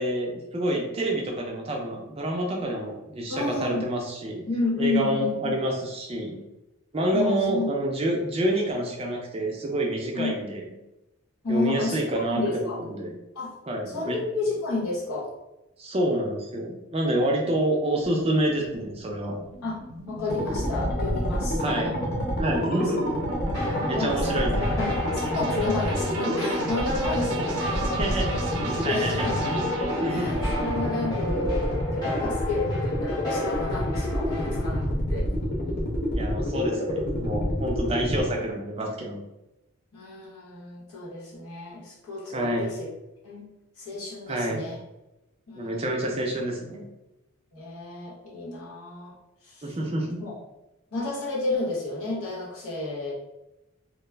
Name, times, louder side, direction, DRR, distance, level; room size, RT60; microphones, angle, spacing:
voice 1, 0.0-4.4 4.8-6.4 6.9-10.6 11.5-13.2 13.7-14.2 15.8-19.4 21.6-22.0 22.4-23.1 23.9-24.6 28.0-28.3 28.6-29.3 30.0-30.3 36.1-39.2 42.3-42.7 44.3-44.6 45.6-46.9 49.6-50.2, right 1 dB, 25° right, 0 dB, 0.4 m, -28 dB
voice 2, 3.3-3.9 4.5-5.6 7.1-7.7 10.1-10.4 11.4-12.8 13.3-13.6 13.9-15.3 17.0-17.5 19.6-19.8 20.1-21.6 22.5-22.9 23.7-27.9 28.9-29.5 30.1-35.3 39.9-42.9 43.2-43.5 43.8-44.8 45.5-46.1 47.5-49.2 49.4-49.8 50.2-50.3 50.9-53.1, left 2 dB, 75° left, -4 dB, 0.9 m, -31 dB
sound 1, 18.0-32.2, right 1 dB, 90° right, 0.6 m, -35 dB
sound 2, 20.3-38.2, equal, 45° left, 0.5 m, -28 dB
sound 3, 23.5-34.8, left 2 dB, 15° left, 0.7 m, -35 dB
2.3 x 2.0 x 3.2 m, 0.94 s
head